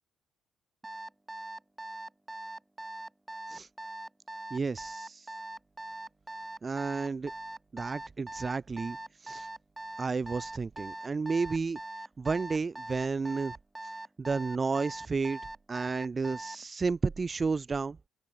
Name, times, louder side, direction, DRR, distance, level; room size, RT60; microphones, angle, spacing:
Alarm, 0.8-16.6, right 1 dB, 15° right, 0.8 m, -41 dB
voice 1, 4.5-5.3 6.6-7.3 7.7-9.5 10.0-11.8 12.2-13.5 14.2-15.4 15.7-18.0, right 4 dB, 30° right, 0.5 m, -32 dB
open air
figure-of-eight pair, 45°, 0 cm